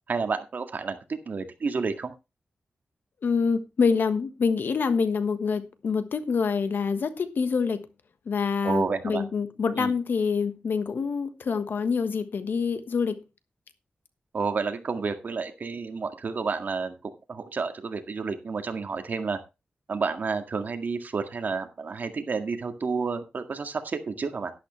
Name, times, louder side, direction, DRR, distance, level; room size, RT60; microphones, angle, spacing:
voice 1, 0.1-2.1 8.6-9.2 9.8-9.9 14.3-19.4 19.9-24.5, right 4 dB, 55° right, 1.9 m, -30 dB
voice 2, 3.2-7.9 8.3-13.2, left 5 dB, 70° left, 1.3 m, -26 dB
11.5 x 11.5 x 3.2 m
wide cardioid pair, 115°, 4 cm